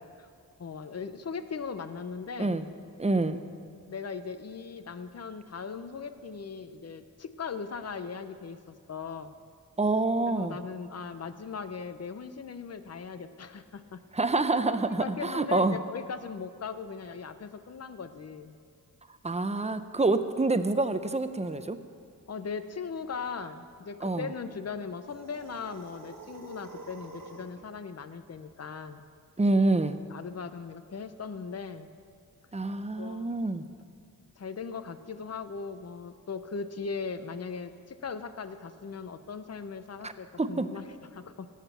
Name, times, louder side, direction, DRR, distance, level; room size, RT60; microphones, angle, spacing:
voice 1, 0.6-2.6 3.9-9.3 10.3-14.0 15.0-18.6 22.3-29.0 30.1-31.9 32.9-33.3 34.4-41.5, left 5 dB, 50° left, 11 dB, 0.7 m, -39 dB
voice 2, 3.0-3.4 9.8-10.6 14.1-15.8 19.2-21.8 24.0-24.3 29.4-30.0 32.5-33.7 40.0-40.1 40.4-40.7, right 2 dB, 20° right, 10 dB, 0.6 m, -27 dB
sound 1, 25.0-27.6, right 3 dB, 70° right, 1.3 m, -47 dB
17.5 x 7.4 x 6.9 m, 2.3 s
wide cardioid pair, 100°, 34 cm